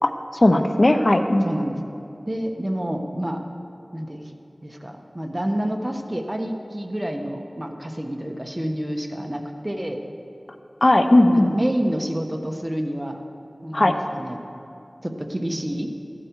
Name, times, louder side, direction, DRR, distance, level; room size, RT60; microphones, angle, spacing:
voice 1, 0.4-1.4 10.8-11.5 13.7-13.9, left 1 dB, 45° left, 7 dB, 0.7 m, -16 dB
voice 2, 1.4-1.8 2.3-3.5 3.9-4.2 4.6-10.0 11.3-13.2 13.6-14.5 15.0-15.9, equal, 25° right, 3 dB, 1.2 m, -28 dB
15.0 x 12.0 x 4.7 m, 2.7 s
wide cardioid pair, 50°, 0 cm